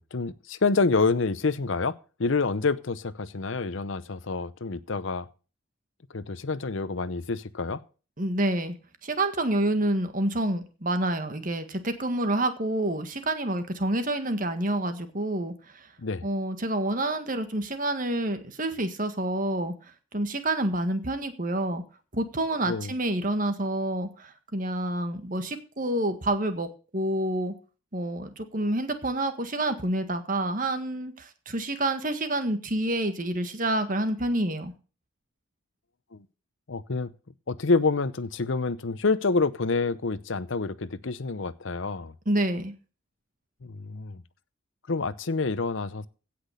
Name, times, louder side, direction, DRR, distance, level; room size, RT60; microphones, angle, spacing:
voice 1, 0.0-5.3 6.1-7.8 16.0-16.3 22.7-22.9 36.1-36.2 36.7-37.1 37.5-42.1 43.6-44.2 44.9-46.1, left 4 dB, 65° left, 0.7 m, -27 dB
voice 2, 8.2-8.8 9.0-15.9 16.2-19.7 20.1-21.8 22.1-27.5 27.9-34.7 42.3-42.7, right 1 dB, 40° right, 1.7 m, -28 dB
16.5 x 6.1 x 6.6 m
head